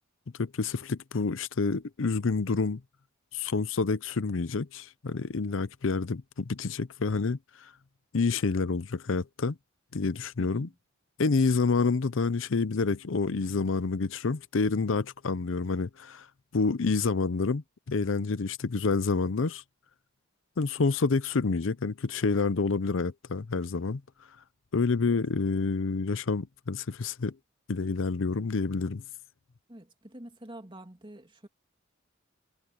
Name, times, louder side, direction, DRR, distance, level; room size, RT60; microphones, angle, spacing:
voice 1, 0.4-2.8 3.3-7.7 8.1-9.6 9.9-10.7 11.2-16.3 16.5-19.6 20.6-24.0 24.7-27.3 27.7-29.0, left 4 dB, 65° left, 0.6 m, -28 dB
voice 2, 10.4-10.8 25.0-25.1 29.7-31.5, right 1 dB, 25° right, 2.7 m, -47 dB
head